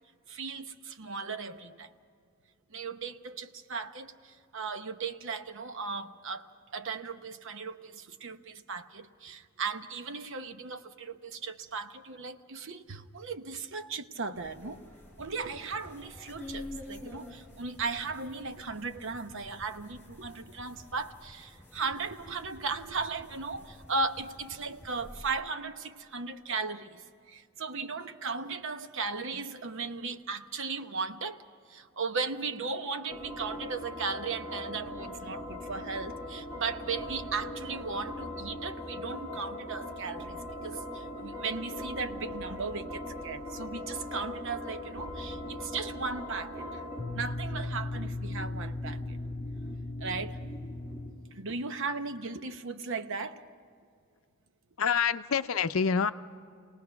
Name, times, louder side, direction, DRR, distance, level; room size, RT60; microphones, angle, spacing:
voice 1, 0.3-1.9 2.7-6.5 6.7-14.8 15.2-31.4 31.7-46.8 47.1-49.2 50.0-50.4 51.3-53.4, right 4 dB, 60° right, 9 dB, 0.9 m, -37 dB
sound 1, 14.3-25.3, left 1 dB, 10° left, 4.5 m, -49 dB
sound 2, 33.1-51.1, left 1 dB, 10° right, 6.0 m, -39 dB
voice 2, 54.8-56.1, left 6 dB, 70° left, 11 dB, 0.6 m, -26 dB
29.0 x 19.0 x 5.8 m, 2.2 s
head